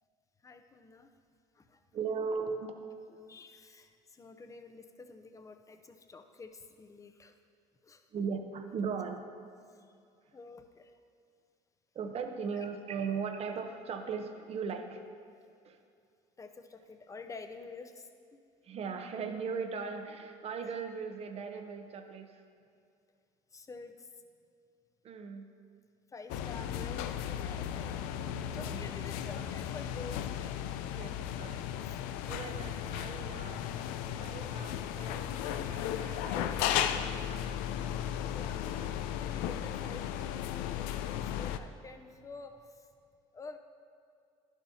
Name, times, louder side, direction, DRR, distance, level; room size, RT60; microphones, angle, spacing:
voice 1, 0.4-1.1 1.5-1.9 3.0-7.4 7.8-8.1 9.7-9.9 10.3-10.9 12.5-12.7 16.4-18.4 23.5-24.2 26.1-28.0 28.5-30.7 31.8-32.0 38.3-38.7 39.2-42.9 43.3-43.6, left 3 dB, 20° left, 7 dB, 0.6 m, -49 dB
voice 2, 1.9-2.7 8.1-9.2 11.9-15.0 15.6-15.8 18.6-22.4 25.0-25.5 28.6-28.8 30.9-31.6 32.3-33.6 34.2-38.0 38.7-39.0, right 5 dB, 45° right, 6 dB, 0.8 m, -38 dB
sound 1, 26.3-41.6, left 10 dB, 80° left, 0.4 m, -35 dB
11.0 x 7.1 x 2.8 m, 2.4 s
supercardioid pair, 85°, 14 cm